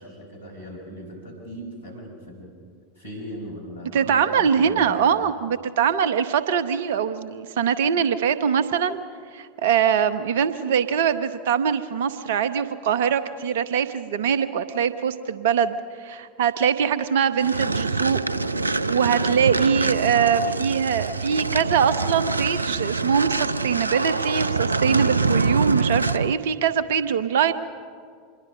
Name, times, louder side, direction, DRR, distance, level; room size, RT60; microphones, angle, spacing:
voice 1, 0.0-2.5 3.0-5.3, equal, 75° left, 0 dB, 6.0 m, -38 dB
voice 2, 3.9-9.0 9.3-18.2 18.9-27.5, right 7 dB, 60° right, 13 dB, 0.9 m, -22 dB
sound 1, 17.4-26.4, right 3 dB, 85° right, 0.4 m, -25 dB
26.0 x 21.5 x 5.3 m, 2.1 s
figure-of-eight pair, 80°, 0 cm